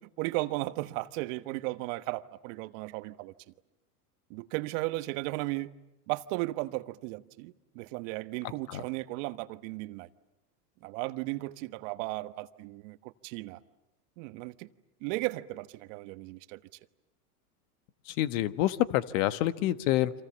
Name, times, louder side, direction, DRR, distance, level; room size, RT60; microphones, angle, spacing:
voice 1, 0.2-3.3 4.3-5.7 6.1-10.1 10.8-13.6 14.2-14.7 15.0-16.6, right 20 dB, 55° right, 1.3 m, -35 dB
voice 2, 18.2-20.1, left 14 dB, 60° left, 1.5 m, -27 dB
28.5 x 26.5 x 7.3 m
hypercardioid pair, 110°, 46 cm